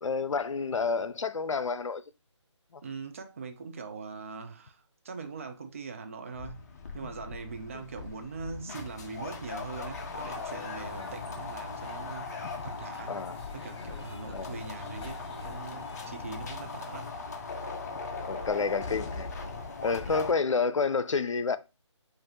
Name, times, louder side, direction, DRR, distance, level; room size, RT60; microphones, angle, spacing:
voice 1, 0.0-2.0 2.7-2.8 7.7-7.8 10.9-11.1 13.1-13.4 14.3-14.6 18.3-19.3 19.8-21.6, left 4 dB, 80° left, 0.5 m, -29 dB
voice 2, 2.8-6.6 6.9-12.3 12.6-13.2 13.5-17.1 20.0-20.3, right 4 dB, 25° right, 0.4 m, -42 dB
sound 1, 6.3-20.3, left 4 dB, 35° left, 0.6 m, -39 dB
sound 2, 9.9-17.1, left 3 dB, 55° left, 1.2 m, -49 dB
5.2 x 2.5 x 2.9 m
figure-of-eight pair, 160°, 16 cm